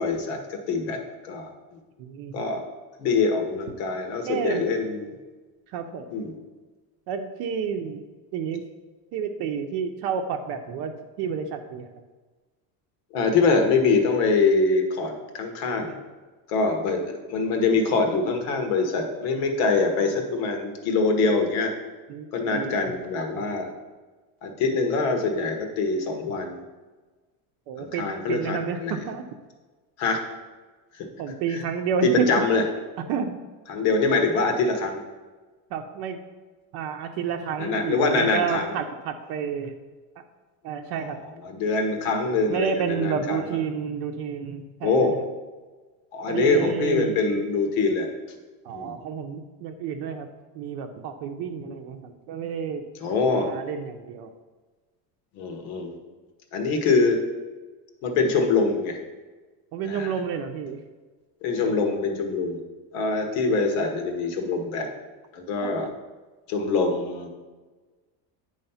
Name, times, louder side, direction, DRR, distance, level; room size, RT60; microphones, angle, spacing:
voice 1, 0.0-1.8 2.3-2.6 3.0-5.1 6.1-6.3 13.1-15.9 16.5-21.7 22.3-23.7 24.4-26.6 27.8-29.0 30.0-30.2 30.9-31.1 31.5-31.6 32.0-32.6 33.7-35.0 37.6-38.7 40.9-43.4 44.8-45.1 46.1-48.1 48.7-48.9 53.0-53.5 55.3-56.0 56.5-57.2 58.0-59.0 59.8-60.1 61.4-62.6 62.9-64.9 65.3-65.9 66.5-67.3, left 4 dB, 85° left, 4 dB, 1.4 m, -24 dB
voice 2, 2.0-2.4 4.3-4.6 5.7-6.1 7.1-8.0 8.3-8.6 9.1-10.9 11.2-11.9 22.1-23.0 23.3-23.4 27.7-29.2 31.2-32.3 33.1-33.3 35.7-36.2 36.7-39.7 40.6-41.2 42.5-45.3 46.3-47.2 48.6-50.3 50.5-52.8 53.1-54.3 59.7-60.8 65.6-65.9, right 7 dB, 55° right, 5 dB, 0.6 m, -30 dB
8.8 x 3.2 x 5.6 m, 1.3 s
cardioid pair, 165°, 44 cm